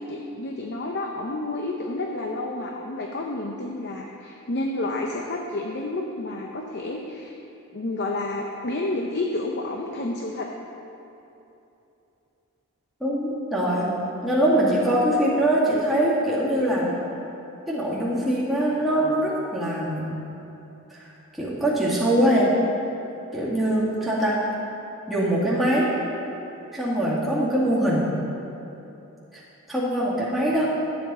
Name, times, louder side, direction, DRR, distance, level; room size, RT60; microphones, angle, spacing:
voice 1, 0.0-7.3 7.7-10.5, left 2 dB, 50° left, 1 dB, 0.7 m, -30 dB
voice 2, 13.0-14.0 14.2-16.9 17.7-20.1 20.9-21.1 21.4-22.6 23.3-24.4 25.1-25.9 26.7-28.1 29.3-29.4 29.7-30.7, right 1 dB, ahead, -9 dB, 2.2 m, -23 dB
12.0 x 8.6 x 4.3 m, 3.0 s
head